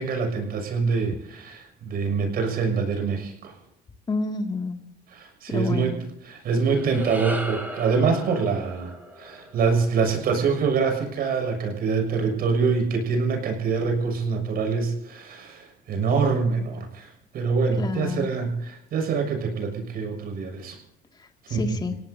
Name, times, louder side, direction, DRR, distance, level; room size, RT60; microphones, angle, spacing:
voice 1, 0.0-3.5 5.1-5.9 6.2-20.8 21.5-21.9, right 5 dB, 65° right, 4 dB, 6.7 m, -25 dB
voice 2, 4.1-4.8 5.5-6.0 17.8-18.3 21.1-21.9, left 3 dB, 25° left, 3 dB, 2.1 m, -29 dB
sound 1, 6.5-11.0, equal, 10° right, 4.4 m, -38 dB
29.0 x 17.5 x 2.7 m, 0.80 s
cardioid pair, 110°, 17 cm